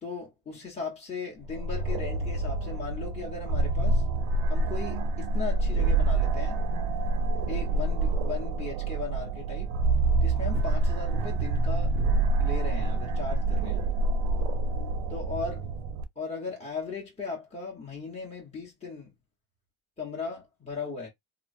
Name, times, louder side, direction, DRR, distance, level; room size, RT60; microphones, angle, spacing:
voice 1, 0.0-4.0 4.5-6.6 7.5-9.7 10.2-11.9 12.4-13.8 15.1-15.8 16.2-19.1 20.0-21.1, left 4 dB, 15° left, 0.9 m, -37 dB
sound 1, 1.5-16.0, right 2 dB, 80° right, 0.6 m, -27 dB
sound 2, 10.5-12.5 13.1-13.6, right 8 dB, 30° right, 0.4 m, -41 dB
3.0 x 2.0 x 2.5 m
cardioid pair, 115°, 46 cm